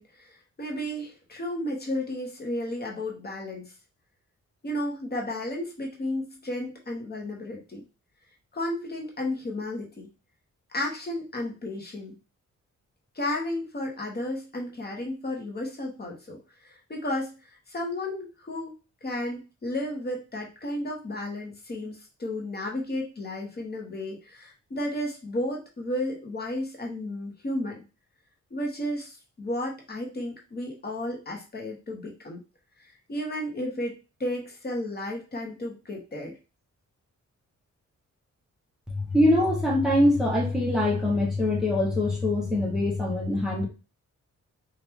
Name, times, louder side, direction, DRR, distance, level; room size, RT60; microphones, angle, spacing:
voice 1, 0.0-3.7 4.6-7.8 8.5-10.1 10.7-12.1 13.1-18.7 19.0-27.8 28.5-32.4 32.8-36.4, left 1 dB, 35° left, -1 dB, 1.0 m, -33 dB
voice 2, 38.9-43.7, left 1 dB, ahead, -2 dB, 0.9 m, -23 dB
4.4 x 2.4 x 3.5 m, 0.31 s
wide cardioid pair, 155°, 30 cm